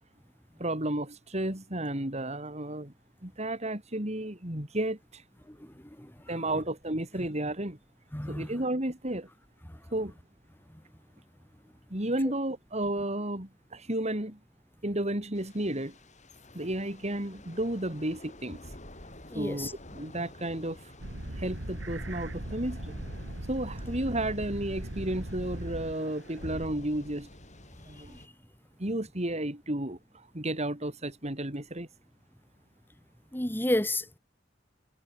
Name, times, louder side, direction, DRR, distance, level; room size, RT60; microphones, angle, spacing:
voice 1, 0.6-2.9 3.2-5.2 6.3-7.8 8.3-9.3 9.9-10.1 11.9-14.4 14.8-16.0 16.5-18.6 19.3-20.8 21.4-22.9 23.5-27.3 27.9-28.2 28.8-30.0 30.3-31.9, right 1 dB, 35° right, 4.2 m, -32 dB
voice 2, 5.5-6.1 8.1-8.5 19.3-19.7 28.1-28.2 33.3-34.2, left 1 dB, 10° left, 1.9 m, -31 dB
Thunder / Rain, 15.3-28.3, left 1 dB, 40° left, 6.1 m, -50 dB
sound 1, 21.0-26.0 26.3-26.7, right 1 dB, 80° right, 2.4 m, -39 dB
head